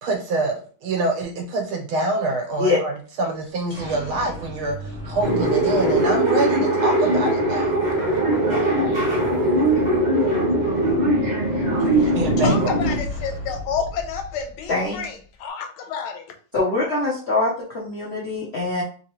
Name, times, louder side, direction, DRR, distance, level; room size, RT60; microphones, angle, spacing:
voice 1, 0.0-7.7 12.1-12.8, right 2 dB, 80° right, 1.8 m, -26 dB
sound 1, 3.4-15.1, right 1 dB, 5° right, 1.3 m, -35 dB
Underground train London, 5.2-13.0, right 1 dB, 40° right, 0.6 m, -20 dB
voice 2, 12.0-16.3, left 6 dB, 80° left, 1.6 m, -30 dB
voice 3, 16.5-18.8, left 3 dB, 60° left, 0.6 m, -23 dB
3.7 x 3.1 x 3.0 m
omnidirectional pair, 2.3 m